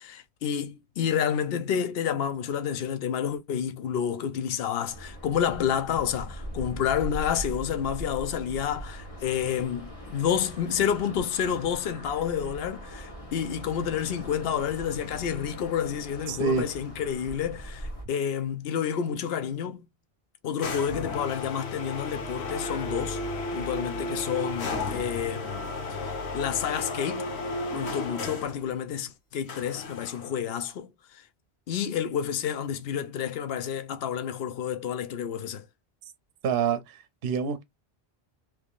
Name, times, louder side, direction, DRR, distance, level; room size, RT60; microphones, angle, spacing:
voice 1, 0.0-19.9 20.4-23.2 23.5-27.3 27.7-31.2 31.7-35.6, left 8 dB, 70° left, 0.8 m, -29 dB
sound 1, 4.9-18.1, equal, 35° left, 1.0 m, -41 dB
voice 2, 16.3-16.6 36.4-37.6, right 6 dB, 65° right, 0.7 m, -27 dB
sound 2, 20.6-28.6 29.5-30.4, left 2 dB, 85° left, 1.2 m, -33 dB
3.4 x 3.2 x 2.3 m
omnidirectional pair, 1.1 m